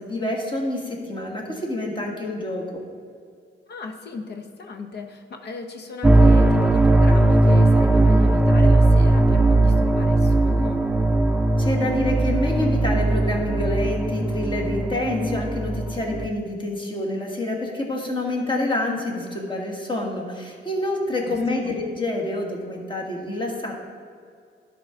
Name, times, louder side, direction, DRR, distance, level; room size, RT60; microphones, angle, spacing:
voice 1, 0.0-2.8 11.6-23.7, left 1 dB, 25° left, -1 dB, 1.5 m, -27 dB
voice 2, 3.7-10.9 21.3-21.8, left 3 dB, 55° left, 5 dB, 0.9 m, -35 dB
sound 1, 6.0-16.3, right 2 dB, 5° right, 0.4 m, -18 dB
11.5 x 4.7 x 3.6 m, 2.2 s
cardioid pair, 90°, 20 cm